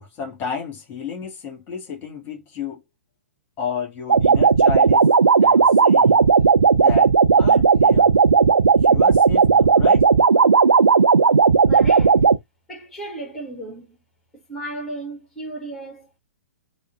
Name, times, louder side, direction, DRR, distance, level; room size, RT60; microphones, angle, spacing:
voice 1, 0.0-2.8 3.6-5.1 5.4-6.3 6.7-7.1 7.4-8.1 8.7-10.1, left 6 dB, 25° left, 1.5 m, -31 dB
sound 1, 4.1-12.4, right 5 dB, 75° right, 0.4 m, -15 dB
voice 2, 11.7-12.3 12.7-14.0 14.3-16.2, right 2 dB, 5° left, 1.4 m, -34 dB
3.5 x 2.1 x 3.7 m
figure-of-eight pair, 115°, 8 cm